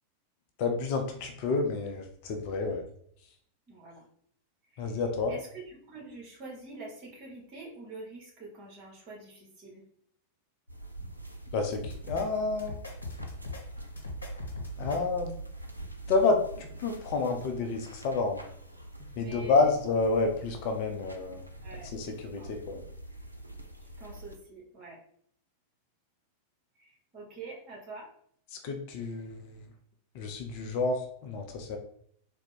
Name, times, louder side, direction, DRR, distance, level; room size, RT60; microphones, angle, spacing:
voice 1, 0.6-2.8 4.8-5.3 11.5-12.8 14.8-15.3 16.1-18.4 19.2-21.4 21.9-22.8 28.6-29.6 30.1-31.8, left 3 dB, 45° left, 5 dB, 0.6 m, -29 dB
voice 2, 3.7-4.0 4.7-5.0 5.3-5.5 5.9-9.8 19.1-19.7 21.6-21.9 22.4-22.7 24.0-25.0 26.8-28.1, right 2 dB, 35° right, -2 dB, 1.5 m, -45 dB
sound 1, 10.7-24.4, right 2 dB, 85° right, 0.4 m, -44 dB
sound 2, 11.8-12.2 12.6-13.6 14.0-15.0, left 3 dB, 80° left, 1.2 m, -40 dB
3.8 x 2.2 x 4.3 m, 0.64 s
figure-of-eight pair, 90°, 0 cm